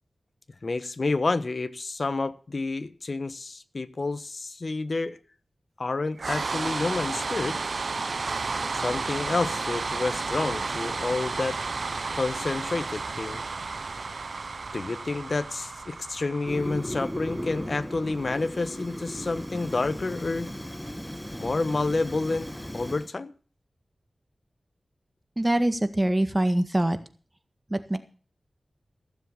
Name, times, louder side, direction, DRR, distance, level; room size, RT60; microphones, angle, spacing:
voice 1, 0.6-5.2 5.8-7.6 8.7-11.6 12.1-13.4 14.7-20.5 21.4-23.3, left 3 dB, 60° left, 1.1 m, -29 dB
sound 1, 6.2-20.3, right 4 dB, 70° right, 0.6 m, -33 dB
Fire, 16.4-23.1, equal, 5° left, 1.2 m, -36 dB
voice 2, 25.4-27.0 27.7-28.0, right 1 dB, 25° right, 1.7 m, -24 dB
16.0 x 7.5 x 7.1 m
cardioid pair, 50°, 0 cm